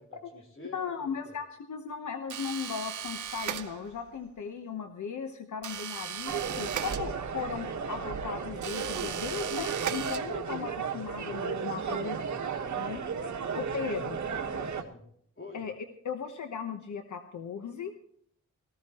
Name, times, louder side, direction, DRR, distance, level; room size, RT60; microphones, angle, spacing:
voice 1, 0.0-1.4 14.3-15.0 15.4-15.7, left 2 dB, 45° left, 0 dB, 3.7 m, -47 dB
voice 2, 0.7-12.2 12.7-13.0 13.6-14.2 15.5-15.7 16.0-18.1, left 6 dB, 80° left, 6 dB, 1.0 m, -37 dB
sound 1, 2.3-4.1 5.6-7.5 8.6-10.6, right 8 dB, 90° right, 1.0 m, -37 dB
sound 2, 6.3-14.8, right 6 dB, 75° right, 1.4 m, -34 dB
18.5 x 15.0 x 3.0 m, 0.66 s
wide cardioid pair, 100°, 29 cm